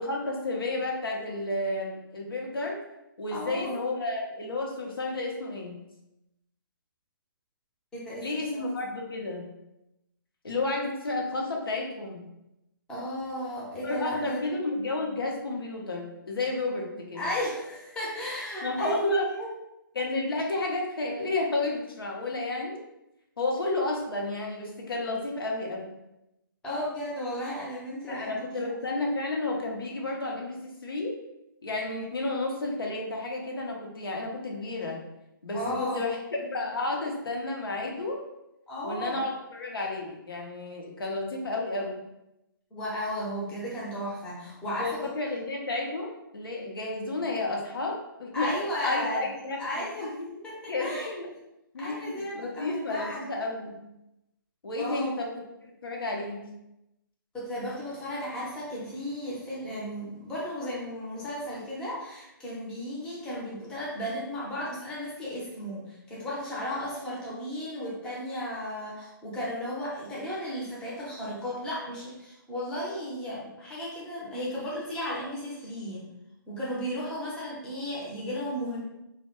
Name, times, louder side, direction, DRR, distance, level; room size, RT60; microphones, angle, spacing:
voice 1, 0.0-2.8 3.2-5.8 8.2-9.5 10.4-12.2 13.8-17.2 18.6-19.3 19.9-22.8 23.4-25.9 28.1-31.1 31.6-35.0 35.4-38.2 38.8-42.0 44.8-48.6 48.8-50.3 50.7-51.3 51.7-53.8 54.6-56.4, left 2 dB, 90° left, -1 dB, 0.6 m, -31 dB
voice 2, 3.3-3.8 7.9-8.2 8.5-8.7 12.9-14.4 17.2-19.5 26.6-28.6 35.5-36.0 38.7-39.2 42.7-45.0 48.3-49.2 49.6-50.1 50.4-51.1 51.8-53.3 54.8-55.1 57.3-76.0 76.5-78.8, equal, 5° left, -7 dB, 0.5 m, -34 dB
2.1 x 2.0 x 2.9 m, 0.88 s
hypercardioid pair, 145°, 12 cm